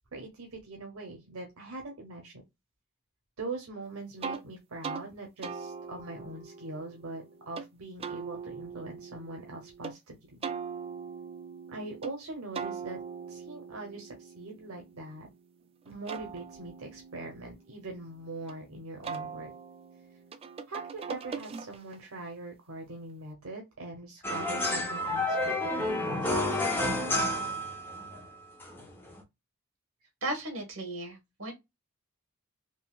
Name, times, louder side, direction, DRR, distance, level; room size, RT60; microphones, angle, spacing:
voice 1, 0.1-2.4 3.4-10.4 11.7-13.0 13.3-15.3 15.8-19.5 20.7-26.6, right 2 dB, 85° right, 0.9 m, -42 dB
sound 1, 4.2-4.4 4.8-5.1 5.4-7.7 8.0-9.9 10.4-12.1 12.6-15.4 15.9-18.5 19.0-22.1, right 6 dB, 25° right, 0.3 m, -41 dB
sound 2, 24.2-28.2 28.6-29.2, left 1 dB, 10° left, 0.8 m, -30 dB
voice 2, 30.2-31.5, right 1 dB, 70° right, 1.4 m, -35 dB
3.8 x 2.4 x 2.3 m
head